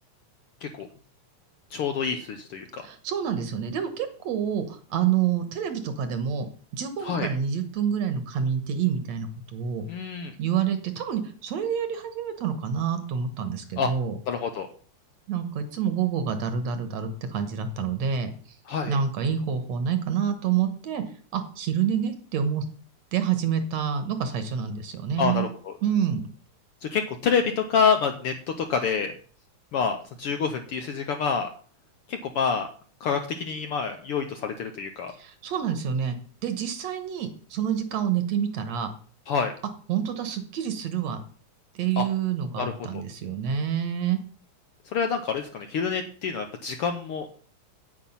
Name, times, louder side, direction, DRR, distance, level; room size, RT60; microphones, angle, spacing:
voice 1, 1.7-2.8 7.0-7.3 9.9-10.4 13.8-13.9 14.3-14.7 18.7-19.0 25.2-25.7 26.8-29.1 29.7-31.5 32.1-32.7 33.0-35.1 39.3-39.5 42.0-42.1 42.6-43.0 44.9-47.3, left 6 dB, 70° left, 6 dB, 1.4 m, -27 dB
voice 2, 2.8-6.5 6.7-9.8 10.4-14.2 15.3-18.3 18.9-21.0 21.3-22.7 23.1-25.5 25.8-26.2 35.2-36.2 36.4-38.9 39.9-41.2 41.8-44.2, right 8 dB, 70° right, 8 dB, 2.2 m, -27 dB
8.8 x 8.7 x 5.4 m, 0.43 s
omnidirectional pair, 3.4 m